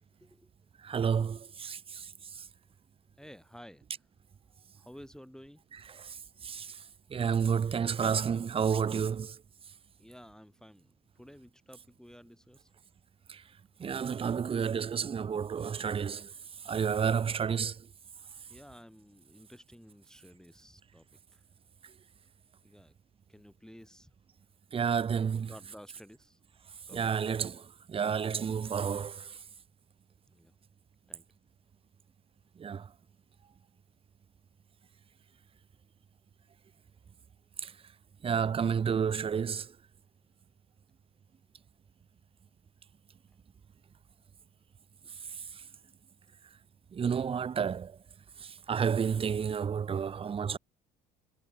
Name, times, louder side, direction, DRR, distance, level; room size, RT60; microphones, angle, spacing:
voice 1, 0.8-2.0 6.4-6.7 7.1-9.3 13.3-13.4 13.8-16.3 16.7-17.7 24.7-25.5 26.9-27.6 27.9-29.3 32.6-32.8 37.6-37.7 38.2-39.7 46.9-47.9 48.7-50.6, right 7 dB, 25° right, 0.7 m, -30 dB
voice 2, 3.2-3.8 4.8-5.6 10.0-12.7 17.2-17.4 18.5-21.1 21.3-21.4 22.6-22.9 23.3-24.1 25.5-26.4 26.9-27.0 30.3-30.5 31.1-31.2, equal, 5° left, 2.3 m, -53 dB
hypercardioid pair, 65°, 21 cm